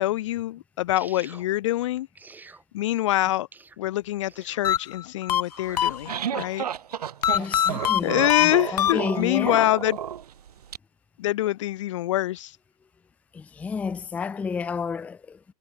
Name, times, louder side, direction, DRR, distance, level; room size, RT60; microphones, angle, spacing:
voice 1, 0.0-2.1 2.7-3.5 3.8-6.6 7.3-7.4 8.0-10.0 11.2-12.5, left 15 dB, 50° left, 0.7 m, -25 dB
sound 1, 0.9-1.5 2.1-2.6 3.5-3.8 4.2-4.6 5.5-6.0, right 4 dB, 10° right, 5.4 m, -47 dB
sound 2, 4.6-6.5 7.2-9.5, left 10 dB, 85° left, 0.4 m, -25 dB
sound 3, 5.7-10.8, right 9 dB, 75° right, 1.0 m, -32 dB
voice 2, 7.3-9.7 13.3-15.5, left 5 dB, 5° left, 0.5 m, -31 dB
hypercardioid pair, 130°, 20 cm